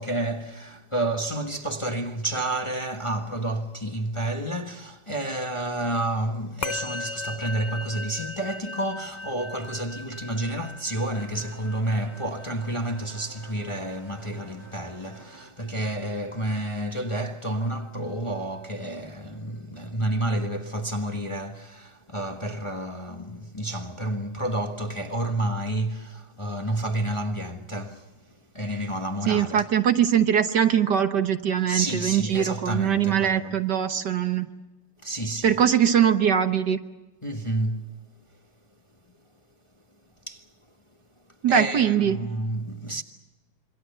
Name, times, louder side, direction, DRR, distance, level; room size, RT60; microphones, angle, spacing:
voice 1, 0.0-28.2 28.5-29.7 31.7-33.6 35.0-35.6 37.2-37.9 40.3-40.5 41.5-43.0, right 1 dB, 15° left, 1.3 m, -30 dB
Musical instrument, 6.6-16.2, left 3 dB, 35° left, 0.7 m, -39 dB
sound 1, 11.1-15.5, right 3 dB, 85° right, 4.6 m, -50 dB
voice 2, 29.3-34.5 35.4-36.8 41.4-42.3, right 8 dB, 60° right, 1.6 m, -22 dB
27.0 x 24.5 x 6.8 m
omnidirectional pair, 2.2 m